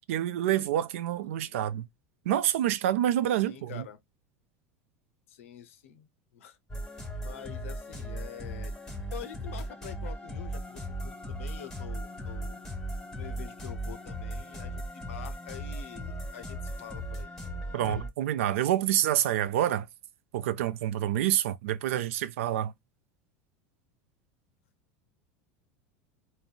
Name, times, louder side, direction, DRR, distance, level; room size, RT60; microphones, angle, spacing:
voice 1, 0.1-1.9 2.3-3.8 17.7-19.9 20.3-22.7, right 12 dB, 80° right, 0.4 m, -27 dB
voice 2, 1.3-1.7 3.5-4.0 5.3-6.6 7.2-8.8 9.1-12.6 13.2-17.3 17.9-18.1, left 10 dB, 85° left, 0.5 m, -46 dB
sound 1, 6.7-18.1, equal, 5° left, 1.2 m, -37 dB
3.6 x 2.1 x 2.2 m
hypercardioid pair, 100°, 7 cm